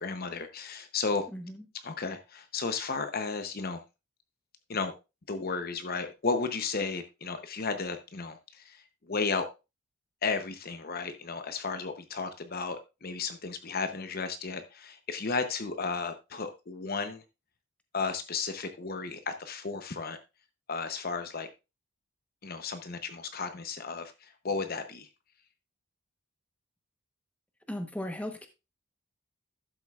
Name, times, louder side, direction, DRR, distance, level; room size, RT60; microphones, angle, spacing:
voice 1, 0.0-1.3 1.8-3.8 4.7-4.9 5.3-9.5 10.2-17.2 17.9-20.2 20.7-21.5 22.4-25.1, left 4 dB, 45° left, 8 dB, 0.8 m, -34 dB
voice 2, 1.3-1.6 27.7-28.5, left 1 dB, 5° left, 6 dB, 1.0 m, -36 dB
12.0 x 7.5 x 2.4 m, 0.26 s
head